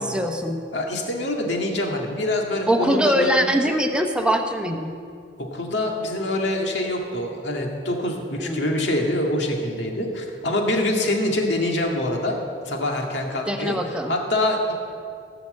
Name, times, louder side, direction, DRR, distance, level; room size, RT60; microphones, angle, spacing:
voice 1, 0.0-0.6 2.7-4.9 8.4-8.8 13.5-14.1, equal, 5° right, 4 dB, 0.9 m, -22 dB
voice 2, 0.7-3.5 5.4-12.4 12.7-13.7 14.1-14.7, left 1 dB, 75° left, 1 dB, 1.9 m, -25 dB
17.5 x 5.9 x 7.6 m, 2.3 s
head